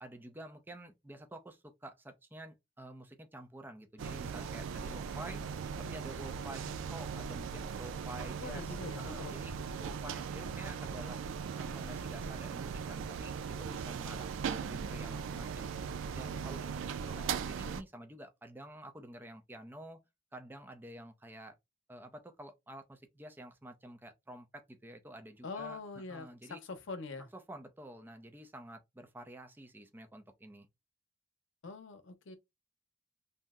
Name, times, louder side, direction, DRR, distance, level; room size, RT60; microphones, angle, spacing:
voice 1, 0.0-5.4 5.8-9.5 9.8-15.7 16.1-20.0 20.3-21.6 21.9-25.8 26.1-26.6 27.3-30.7, right 1 dB, 10° right, 0.4 m, -49 dB
sound 1, 4.0-17.8, right 6 dB, 90° right, 0.3 m, -39 dB
voice 2, 8.4-9.3 25.4-27.3 31.6-32.4, left 4 dB, 90° left, 0.6 m, -44 dB
2.7 x 2.0 x 3.5 m
head